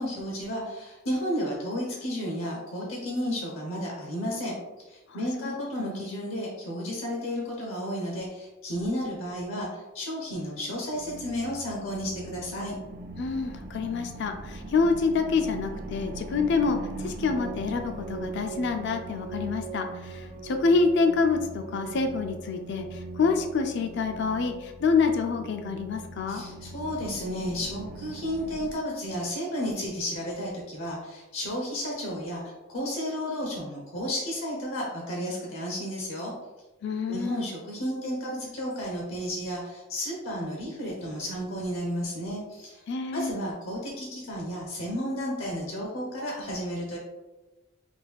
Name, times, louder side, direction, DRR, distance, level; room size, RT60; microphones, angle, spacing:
voice 1, 0.0-12.8 26.3-36.3 37.1-42.8 43.1-47.0, equal, 75° left, -2 dB, 0.9 m, -32 dB
voice 2, 5.4-6.0 13.2-26.4 36.8-37.4 42.9-43.3, left 4 dB, 60° left, 6 dB, 0.4 m, -27 dB
sound 1, 10.9-28.7, right 3 dB, 40° right, 0.5 m, -40 dB
5.1 x 2.3 x 3.5 m, 1.1 s
head